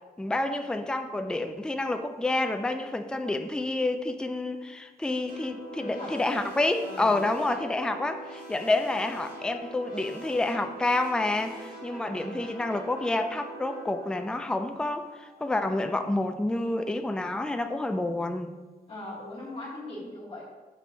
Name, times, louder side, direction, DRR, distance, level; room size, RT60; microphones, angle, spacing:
voice 1, 0.2-18.5, left 2 dB, 5° left, 6 dB, 0.4 m, -29 dB
sound 1, 5.3-15.8, right 1 dB, 70° right, 1.7 m, -44 dB
voice 2, 5.8-6.5 6.8-7.2 12.1-12.5 18.9-20.4, left 1 dB, 35° left, -6 dB, 1.5 m, -40 dB
6.1 x 3.0 x 5.5 m, 1.2 s
wide cardioid pair, 120°, 16 cm